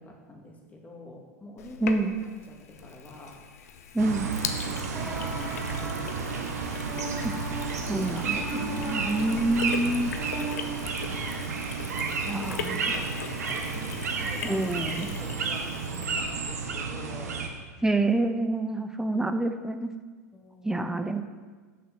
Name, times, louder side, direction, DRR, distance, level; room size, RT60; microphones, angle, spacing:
voice 1, 0.0-3.4 4.6-6.5 8.1-8.4 11.8-14.7 15.1-17.8 20.3-21.0, left 1 dB, 15° left, 0 dB, 2.2 m, -47 dB
Sink (filling or washing), 1.6-16.7, left 7 dB, 70° left, 0.8 m, -40 dB
voice 2, 1.8-2.1 3.9-4.3 7.2-7.3 7.9-10.1 12.2-12.8 14.4-15.2 17.8-19.9 20.6-21.2, right 2 dB, 5° right, 8 dB, 0.8 m, -27 dB
sound 1, 4.0-17.5, right 5 dB, 75° right, 1.1 m, -32 dB
sound 2, 4.9-11.3, right 1 dB, 25° right, 2.8 m, -39 dB
7.7 x 6.7 x 6.2 m, 1.4 s
hypercardioid pair, 85°, 9 cm